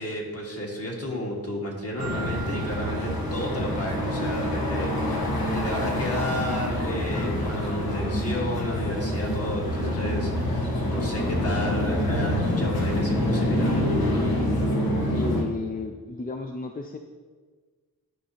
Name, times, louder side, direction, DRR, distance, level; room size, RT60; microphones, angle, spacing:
voice 1, 0.0-13.8, equal, 40° left, -1 dB, 1.6 m, -32 dB
sound 1, 2.0-15.4, left 1 dB, 90° left, 1.2 m, -26 dB
Marimba xylophone, 2.0-4.2, right 8 dB, 85° right, 0.7 m, -42 dB
voice 2, 15.1-17.0, left 3 dB, 25° left, 4 dB, 0.4 m, -33 dB
10.5 x 5.0 x 2.9 m, 1.5 s
wide cardioid pair, 75°, 35 cm